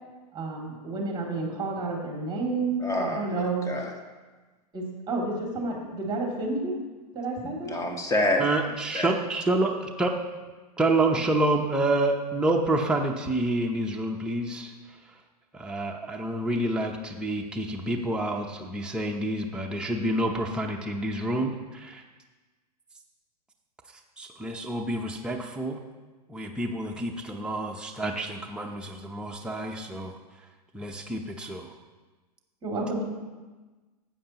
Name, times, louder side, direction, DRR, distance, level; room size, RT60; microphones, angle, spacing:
voice 1, 0.3-2.8 3.1-3.6 4.7-6.8 7.1-7.8 32.6-33.0, right 3 dB, 20° right, -1 dB, 2.7 m, -30 dB
voice 2, 2.8-4.0 7.6-9.2, left 1 dB, 15° left, 3 dB, 1.3 m, -28 dB
voice 3, 8.4-10.1 10.8-14.7 15.5-22.0 24.2-25.8 26.3-30.1 30.7-31.7, right 2 dB, 5° right, 1 dB, 0.8 m, -28 dB
12.5 x 8.5 x 3.0 m, 1.3 s
hypercardioid pair, 115°, 21 cm